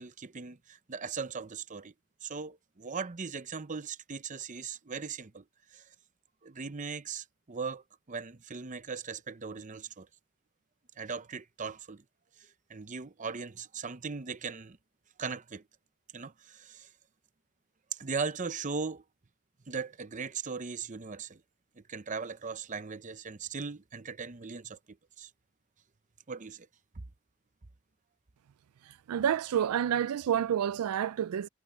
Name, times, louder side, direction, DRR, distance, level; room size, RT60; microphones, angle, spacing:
voice 1, 0.0-1.9 2.2-5.4 5.7-5.9 6.4-10.1 11.0-12.0 12.4-14.8 15.2-15.6 16.1-16.9 17.9-19.0 19.7-21.4 21.8-25.3 26.3-26.7, right 5 dB, 35° right, 0.7 m, -39 dB
voice 2, 28.8-31.5, right 9 dB, 80° right, 0.3 m, -29 dB
head